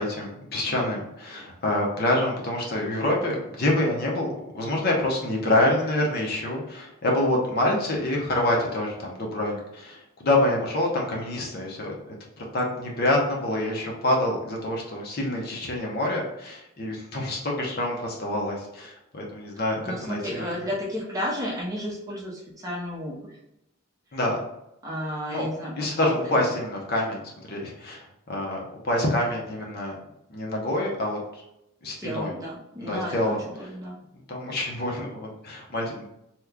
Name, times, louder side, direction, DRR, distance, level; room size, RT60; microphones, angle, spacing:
voice 1, 0.0-20.5 24.1-24.4 25.3-25.5 25.8-29.9 30.3-31.4 31.8-32.3 32.8-33.4 34.3-36.0, left 1 dB, 45° left, -2 dB, 0.7 m, -27 dB
voice 2, 19.8-23.4 24.8-26.6 32.0-34.0, equal, 15° right, -5 dB, 0.7 m, -32 dB
2.9 x 2.3 x 3.5 m, 0.83 s
head